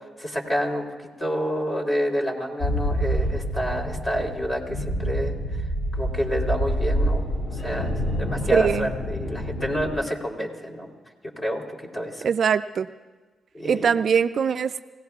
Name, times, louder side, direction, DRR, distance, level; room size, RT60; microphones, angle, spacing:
voice 1, 0.2-0.9 1.2-5.3 5.9-7.3 7.5-10.9 11.4-12.3 13.5-13.9, equal, 30° left, 1 dB, 3.4 m, -28 dB
sound 1, 2.6-9.9, equal, 65° left, 2.8 m, -27 dB
voice 2, 8.5-8.9 12.2-12.9 13.6-14.8, right 7 dB, 65° right, 12 dB, 0.4 m, -22 dB
30.0 x 17.0 x 2.4 m, 1.3 s
supercardioid pair, 50°, 0 cm